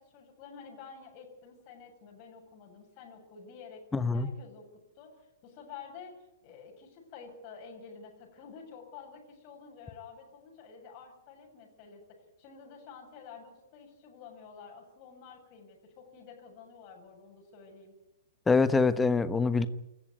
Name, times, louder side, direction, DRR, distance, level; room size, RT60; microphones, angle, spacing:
voice 1, 0.0-17.9, left 6 dB, 35° left, 1 dB, 7.7 m, -50 dB
voice 2, 3.9-4.3 18.5-19.7, left 4 dB, 10° left, 14 dB, 1.3 m, -25 dB
28.0 x 15.0 x 9.6 m, 0.92 s
figure-of-eight pair, 110°, 0 cm